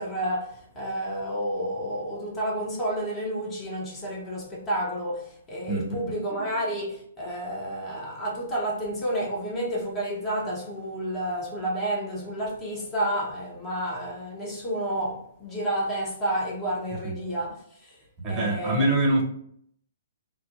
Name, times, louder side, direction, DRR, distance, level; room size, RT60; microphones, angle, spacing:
voice 1, 0.0-18.0 18.3-18.9, right 1 dB, 15° left, 0.6 m, -30 dB
voice 2, 5.7-6.1 18.2-19.2, right 2 dB, 25° right, 0.7 m, -24 dB
2.5 x 2.1 x 2.4 m
figure-of-eight pair, 120°, 0 cm